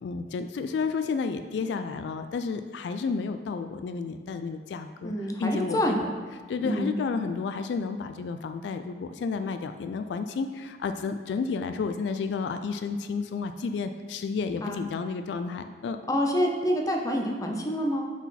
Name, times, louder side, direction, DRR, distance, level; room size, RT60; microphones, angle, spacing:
voice 1, 0.0-6.0 6.5-16.0, left 5 dB, 75° left, 8 dB, 0.3 m, -31 dB
voice 2, 5.0-6.0 6.6-7.0 14.6-14.8 16.1-18.0, equal, 20° left, 2 dB, 0.5 m, -27 dB
5.9 x 4.1 x 4.1 m, 1.5 s
head